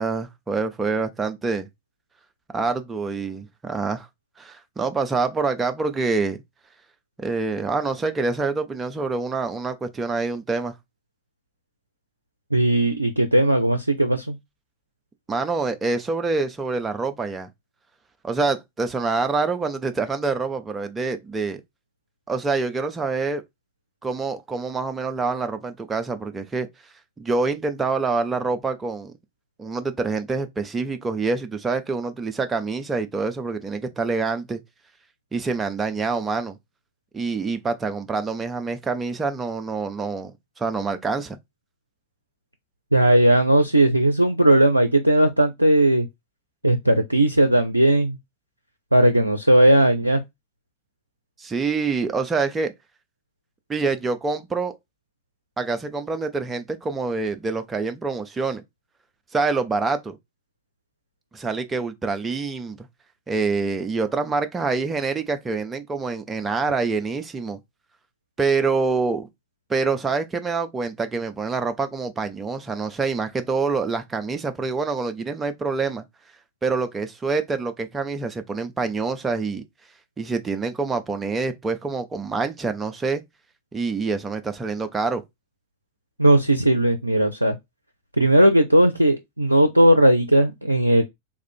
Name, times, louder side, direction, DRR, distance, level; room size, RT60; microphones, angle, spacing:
voice 1, 0.0-1.7 2.5-4.1 4.4-6.4 7.2-10.7 15.3-17.5 18.2-21.6 22.3-23.4 24.0-26.7 27.2-29.1 29.6-34.6 35.3-36.6 37.1-40.3 40.6-41.4 51.4-52.7 53.7-54.8 55.6-58.6 59.3-60.2 61.3-62.8 63.3-67.6 68.4-69.3 69.7-76.0 76.6-79.6 80.2-83.2 83.7-85.2, right 4 dB, 15° right, 0.6 m, -26 dB
voice 2, 12.5-14.4 42.9-46.1 46.6-48.2 48.9-50.2 86.2-87.6 88.2-91.0, right 1 dB, 85° right, 0.5 m, -17 dB
3.5 x 2.5 x 4.4 m
figure-of-eight pair, 90°, 0 cm